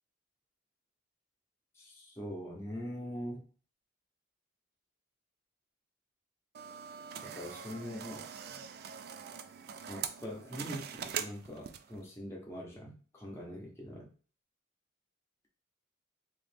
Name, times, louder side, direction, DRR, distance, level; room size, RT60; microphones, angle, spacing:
voice 1, 1.7-3.4 7.2-8.3 9.9-14.1, equal, 15° left, -3 dB, 0.9 m, -43 dB
sound 1, 6.5-12.0, right 8 dB, 50° right, 0.4 m, -43 dB
3.7 x 3.0 x 3.4 m, 0.39 s
head